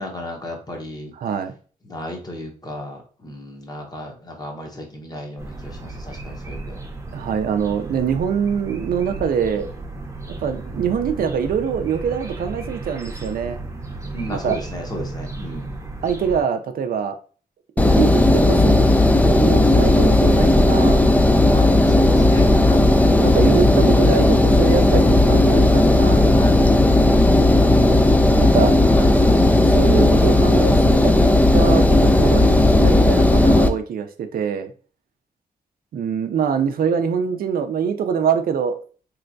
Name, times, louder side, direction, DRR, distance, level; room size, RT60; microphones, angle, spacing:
voice 1, 0.0-1.1 1.9-6.8 14.1-15.7 21.4-22.9 26.3-27.4 28.9-29.3, left 1 dB, 25° left, 1 dB, 0.9 m, -34 dB
voice 2, 1.1-1.5 7.1-9.7 10.3-13.6 14.3-14.6 16.0-17.2 17.8-18.8 19.2-21.0 23.1-26.2 28.3-28.7 29.7-34.7 35.9-38.8, right 7 dB, 80° right, 7 dB, 0.4 m, -24 dB
sound 1, 5.4-16.4, right 2 dB, 20° right, 0.7 m, -34 dB
Engine, 17.8-33.7, left 1 dB, 10° left, 0.3 m, -15 dB
3.3 x 3.0 x 2.5 m, 0.40 s
cardioid pair, 95°, 15 cm